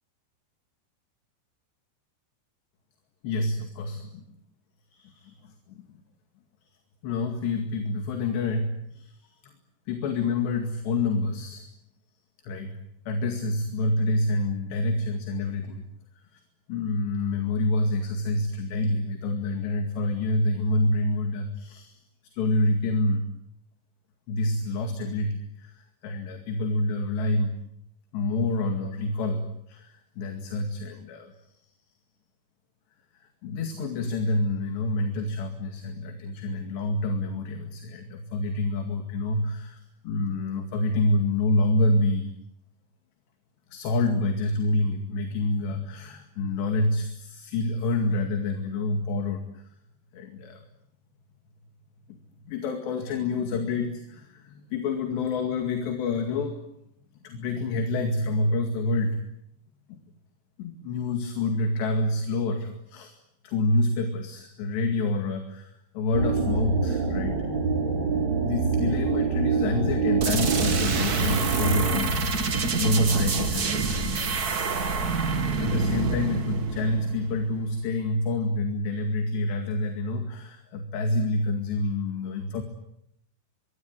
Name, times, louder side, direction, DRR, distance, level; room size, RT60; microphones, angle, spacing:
voice 1, 3.2-4.2 4.9-5.9 7.0-9.5 9.9-11.7 12.4-12.8 13.1-15.8 16.3-16.4 16.7-22.0 22.3-23.3 24.3-27.6 28.1-31.3 33.4-42.3 43.7-49.6 50.1-50.6 52.1-52.2 52.5-56.6 57.2-59.2 59.9-60.0 60.6-63.2 63.4-67.4 68.4-74.4 75.6-82.6, left 2 dB, 80° left, 5 dB, 4.4 m, -27 dB
sound 1, 66.1-72.0, right 4 dB, 40° right, 8.0 m, -26 dB
sound 2, 70.2-77.8, right 4 dB, 80° right, 0.8 m, -27 dB
24.0 x 24.0 x 9.5 m, 0.76 s
omnidirectional pair, 4.9 m